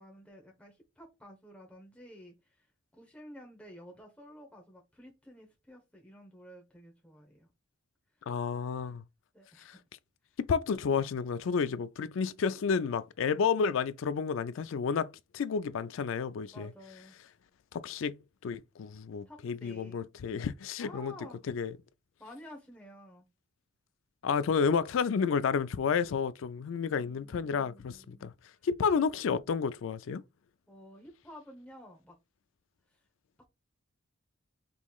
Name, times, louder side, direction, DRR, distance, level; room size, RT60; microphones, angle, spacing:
voice 1, 0.0-2.7 2.9-7.5 8.2-8.3 8.8-9.0 9.3-9.8 16.5-17.2 19.2-20.0 20.8-21.4 22.2-23.3 26.8-28.3 28.5-28.7 30.7-32.2 32.9-33.0, equal, 5° left, 0.9 m, -52 dB
voice 2, 8.3-9.0 9.6-9.7 10.4-16.7 17.7-21.1 21.5-21.7 24.2-28.3 28.6-30.2, left 6 dB, 70° left, 0.4 m, -31 dB
5.4 x 3.0 x 2.3 m
head